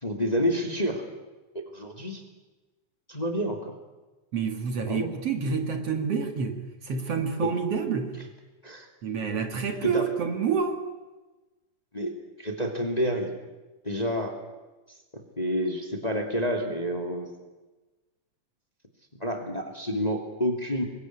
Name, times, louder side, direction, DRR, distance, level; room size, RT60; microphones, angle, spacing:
voice 1, 0.0-1.0 1.5-2.2 3.1-3.7 4.9-5.1 7.4-7.5 8.6-8.9 9.8-10.1 11.9-12.1 12.4-13.3 13.8-14.4 15.1-17.3 19.2-20.8, equal, 15° left, 4 dB, 2.5 m, -29 dB
voice 2, 4.3-8.1 9.0-10.8, right 6 dB, 55° right, 6 dB, 2.7 m, -28 dB
26.0 x 22.0 x 9.6 m, 1.2 s
omnidirectional pair, 3.5 m